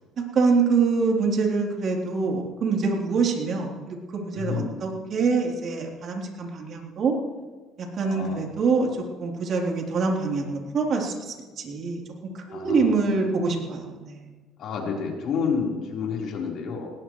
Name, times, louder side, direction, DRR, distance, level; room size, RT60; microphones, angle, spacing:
voice 1, 0.2-7.2 7.8-12.0 12.3-14.3, right 4 dB, 50° right, 0 dB, 3.5 m, -25 dB
voice 2, 4.3-4.7 8.0-8.4 12.5-12.9 14.6-16.9, left 5 dB, 60° left, -2 dB, 4.2 m, -29 dB
19.5 x 18.5 x 3.2 m, 1.3 s
cardioid pair, 115°, 0 cm